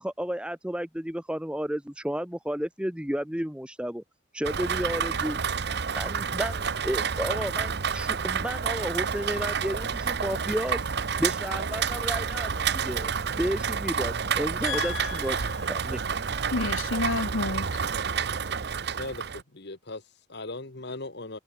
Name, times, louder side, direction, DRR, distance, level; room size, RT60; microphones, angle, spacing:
voice 1, 0.0-4.0 4.3-5.4 5.9-10.9 11.2-13.1 13.4-16.0, equal, 5° right, 0.8 m, -32 dB
Rain, 4.4-19.4, right 6 dB, 50° right, 0.7 m, -29 dB
voice 2, 14.6-15.5 16.5-17.7, left 3 dB, 75° left, 1.2 m, -30 dB
voice 3, 18.9-21.4, left 2 dB, 55° left, 1.6 m, -39 dB
head